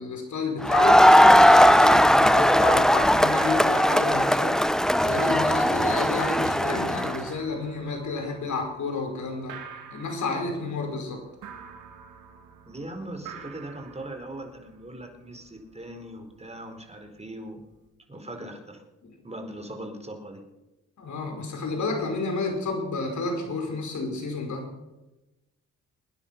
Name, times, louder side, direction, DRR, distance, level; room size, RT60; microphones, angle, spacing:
voice 1, 0.0-4.6 5.0-9.6 9.9-11.2 21.0-24.7, left 3 dB, 70° left, 3 dB, 5.1 m, -30 dB
Crowd, 0.6-7.2, equal, ahead, 0.8 m, -18 dB
sound 1, 3.3-17.9, right 8 dB, 85° right, 2.2 m, -46 dB
voice 2, 12.6-17.6 18.1-18.8 19.2-20.4, right 1 dB, 20° right, 4 dB, 4.5 m, -40 dB
23.0 x 9.9 x 6.0 m, 1.0 s
supercardioid pair, 55°, 31 cm